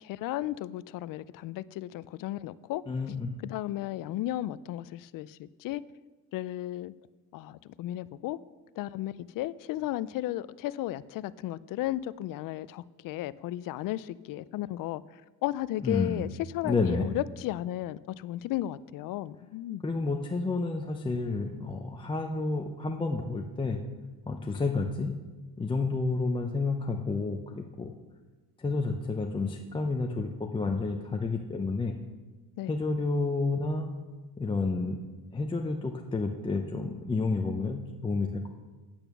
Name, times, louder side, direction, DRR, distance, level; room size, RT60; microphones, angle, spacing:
voice 1, 0.0-2.8 3.4-5.8 6.3-6.9 7.3-8.4 8.8-19.8 32.6-32.8, left 14 dB, 55° left, 18 dB, 0.5 m, -34 dB
voice 2, 2.9-3.4 15.8-16.2 16.6-17.1 19.8-23.8 24.3-25.2 25.6-27.9 28.6-32.0 32.7-33.9 34.4-35.0 35.3-38.5, left 3 dB, 15° left, 3 dB, 0.6 m, -30 dB
8.9 x 8.8 x 6.0 m, 1.2 s
cardioid pair, 125°, 39 cm